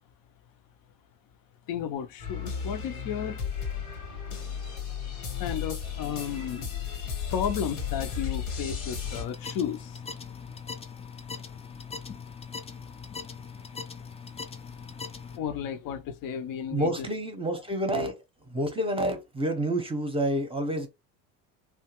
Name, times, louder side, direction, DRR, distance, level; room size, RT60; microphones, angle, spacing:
voice 1, 1.7-3.4 5.1-6.7 7.0-10.0 15.4-17.1, left 8 dB, 50° left, 0.6 m, -33 dB
sound 1, 2.2-9.2, left 7 dB, 85° left, 1.2 m, -34 dB
sound 2, 9.0-15.4, left 5 dB, 15° left, 0.4 m, -41 dB
voice 2, 16.7-18.2 18.5-20.9, right 1 dB, 15° right, 0.8 m, -28 dB
2.7 x 2.2 x 2.9 m
hypercardioid pair, 75°, 43 cm